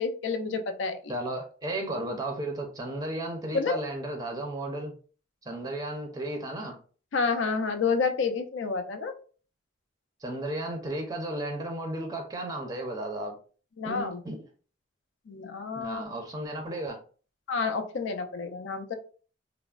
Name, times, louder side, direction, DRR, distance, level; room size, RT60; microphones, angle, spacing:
voice 1, 0.0-1.1 3.5-3.8 7.1-9.1 13.8-14.2 15.3-16.0 17.5-18.9, left 4 dB, 75° left, 8 dB, 0.4 m, -29 dB
voice 2, 1.1-4.9 5.4-6.8 10.2-13.4 13.8-14.4 15.7-17.0, right 1 dB, 20° right, 2 dB, 0.5 m, -34 dB
3.3 x 2.0 x 2.3 m, 0.39 s
head